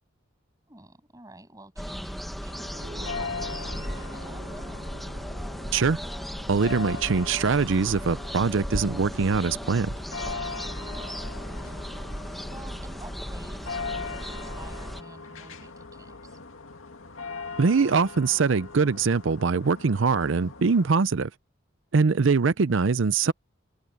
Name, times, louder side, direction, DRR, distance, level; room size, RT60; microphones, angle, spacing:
voice 1, 0.7-4.5 10.9-12.2 12.5-16.4 22.4-22.6, right 1 dB, 15° right, 7.8 m, -50 dB
sound 1, 1.8-15.0, equal, ahead, 1.3 m, -36 dB
sound 2, 2.5-20.9, left 4 dB, 85° left, 2.1 m, -40 dB
sound 3, 2.6-12.2, right 1 dB, 40° right, 4.6 m, -50 dB
voice 2, 6.5-9.9 17.6-21.3 21.9-23.3, right 4 dB, 70° right, 0.5 m, -23 dB
head